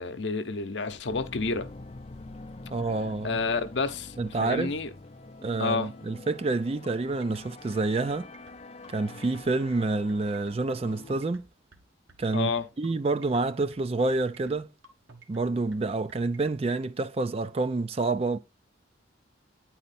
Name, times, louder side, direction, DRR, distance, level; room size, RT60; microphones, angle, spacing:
voice 1, 0.0-1.7 3.2-4.9 5.6-5.9 12.3-12.7, left 4 dB, 65° left, 0.7 m, -29 dB
sound 1, 1.0-11.2, left 2 dB, 30° left, 0.5 m, -46 dB
voice 2, 2.7-3.4 4.2-4.7 5.4-8.3 8.9-11.5 12.2-12.5 12.8-14.7 15.3-18.4, right 3 dB, 30° right, 0.4 m, -28 dB
sound 2, 6.8-16.6, right 3 dB, 80° right, 1.4 m, -54 dB
9.1 x 4.2 x 4.2 m
head